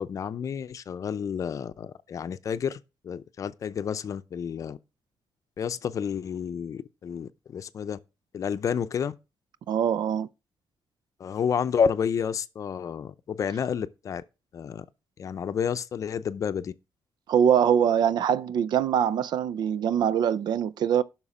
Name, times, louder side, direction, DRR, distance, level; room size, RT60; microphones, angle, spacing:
voice 1, 0.0-4.8 5.6-8.0 8.3-9.1 11.2-14.2 14.5-14.9 15.2-16.7, left 7 dB, 45° left, 0.6 m, -30 dB
voice 2, 9.7-10.3 17.3-21.0, right 8 dB, 70° right, 0.4 m, -23 dB
11.5 x 6.1 x 4.9 m
cardioid pair, 150°, 8 cm